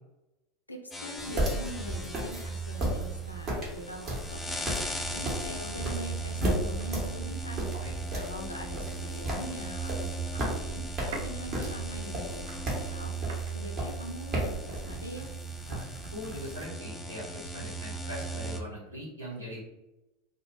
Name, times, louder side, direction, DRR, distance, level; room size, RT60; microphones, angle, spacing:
voice 1, 0.7-15.4, equal, 90° left, 2 dB, 0.4 m, -43 dB
sound 1, 0.9-18.6, right 3 dB, 15° left, 0.3 m, -38 dB
sound 2, 1.2-16.6, right 1 dB, 40° right, 0.9 m, -35 dB
sound 3, 6.7-13.8, right 3 dB, 65° right, 0.5 m, -49 dB
voice 2, 15.7-19.6, equal, 85° right, -6 dB, 1.0 m, -41 dB
2.2 x 2.1 x 3.0 m, 0.98 s
figure-of-eight pair, 85°, 0 cm